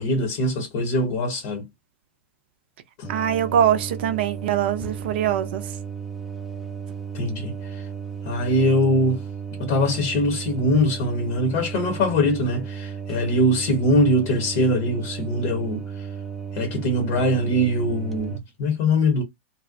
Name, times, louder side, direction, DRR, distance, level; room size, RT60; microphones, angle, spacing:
voice 1, 0.0-1.7 3.0-3.1 7.1-7.9 8.2-9.2 9.6-16.1 16.5-19.2, left 1 dB, 50° left, 0.8 m, -22 dB
sound 1, 3.0-18.4, right 6 dB, ahead, 0.6 m, -34 dB
voice 2, 3.1-5.8, right 10 dB, 60° right, 0.5 m, -23 dB
2.6 x 2.0 x 2.5 m
figure-of-eight pair, 95°, 6 cm